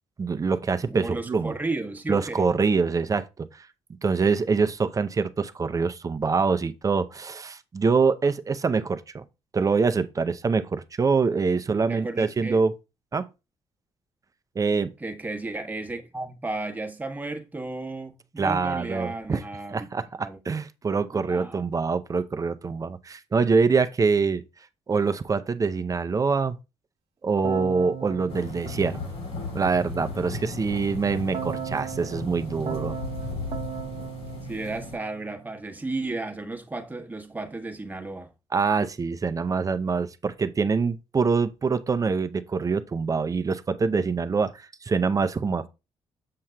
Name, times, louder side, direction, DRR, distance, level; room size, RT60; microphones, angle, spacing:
voice 1, 0.2-1.5 2.1-3.7 4.0-9.2 9.5-12.7 13.1-13.3 14.6-14.9 18.4-19.4 19.7-24.4 24.9-26.6 27.2-29.0 29.5-32.9 38.5-45.7, right 4 dB, 30° right, 0.5 m, -25 dB
voice 2, 0.9-2.5 11.9-12.6 15.0-19.9 20.2-20.4 21.1-21.6 34.5-38.3, right 2 dB, 15° right, 1.1 m, -33 dB
Keyboard (musical), 27.4-29.8 31.3-35.6, right 8 dB, 65° right, 0.8 m, -37 dB
sound 1, 28.3-35.0, left 3 dB, 80° left, 3.6 m, -36 dB
7.5 x 5.7 x 2.2 m
cardioid pair, 75°, 11 cm